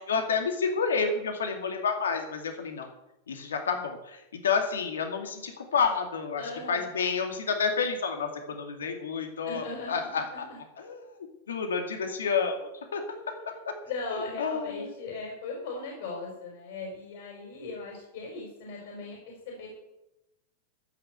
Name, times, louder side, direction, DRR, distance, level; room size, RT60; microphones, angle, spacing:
voice 1, 0.1-2.9 3.3-6.4 6.7-10.5 10.8-11.1 11.5-13.3 13.6-13.7 14.1-14.9, left 5 dB, 85° left, 4 dB, 2.3 m, -30 dB
voice 2, 6.4-6.9 9.4-10.6 13.9-19.7, left 3 dB, 65° left, -1 dB, 5.4 m, -38 dB
15.0 x 6.5 x 8.3 m, 0.92 s
hypercardioid pair, 105°, 0 cm